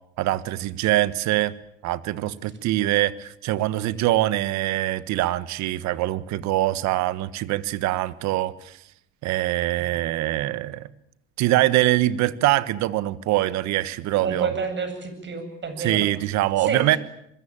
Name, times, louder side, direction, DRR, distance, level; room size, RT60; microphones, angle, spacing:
voice 1, 0.2-1.5 1.8-8.8 9.2-10.9 11.4-14.5 15.8-17.0, right 15 dB, 65° right, 15 dB, 1.6 m, -23 dB
voice 2, 14.2-16.1 16.6-17.0, right 5 dB, 40° right, 9 dB, 7.9 m, -29 dB
25.0 x 21.5 x 9.0 m, 0.76 s
supercardioid pair, 85°, 29 cm